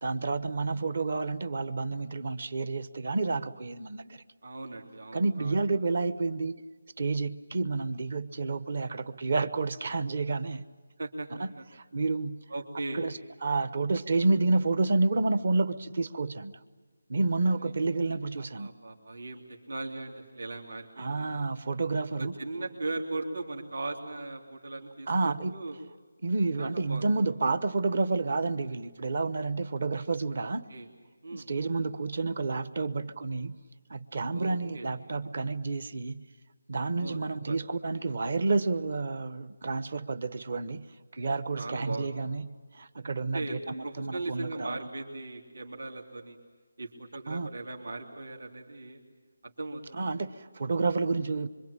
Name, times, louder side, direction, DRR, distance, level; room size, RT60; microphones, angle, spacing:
voice 1, 0.0-4.2 5.1-6.6 7.0-10.6 11.4-12.4 12.9-16.6 17.1-18.7 21.0-22.3 25.1-25.6 26.2-30.6 31.3-33.6 33.9-36.2 36.7-40.9 41.1-42.5 42.7-44.9 47.3-47.5 49.9-51.5, right 3 dB, 45° right, 15 dB, 1.1 m, -30 dB
voice 2, 4.4-5.6 11.0-11.6 12.5-13.0 17.6-17.7 18.4-21.3 22.2-25.8 26.6-27.1 30.4-30.9 31.2-31.5 34.3-34.9 36.9-37.2 37.5-37.6 41.5-42.1 43.2-46.4 46.8-49.0 49.4-50.0, right 2 dB, 75° right, 1 dB, 3.5 m, -38 dB
26.0 x 24.5 x 8.9 m, 1.4 s
figure-of-eight pair, 175°, 0 cm